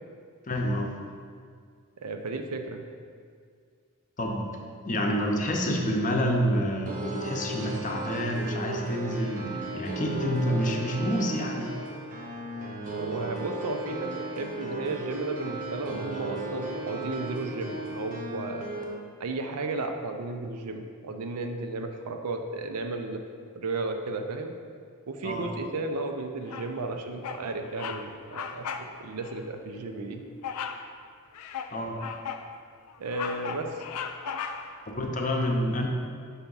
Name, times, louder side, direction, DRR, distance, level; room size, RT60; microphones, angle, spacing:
voice 1, 0.5-0.9 4.2-4.5 4.8-11.7 25.2-25.5 31.7-32.0 34.9-35.9, equal, 35° left, 1 dB, 0.6 m, -28 dB
voice 2, 2.0-2.8 12.9-18.6 19.2-23.2 23.5-24.5 25.1-30.2 33.0-33.7, right 3 dB, 85° right, 5 dB, 0.5 m, -34 dB
sound 1, 6.9-18.8, right 2 dB, 40° right, 0.8 m, -36 dB
Bird vocalization bird call bird song, 26.5-26.9 27.2-27.5 27.7-28.0 28.3-28.9 29.2-29.4 30.4-30.9 31.3-32.5 32.9-34.8, left 7 dB, 80° left, 0.4 m, -36 dB
5.6 x 3.5 x 5.4 m, 2.1 s
head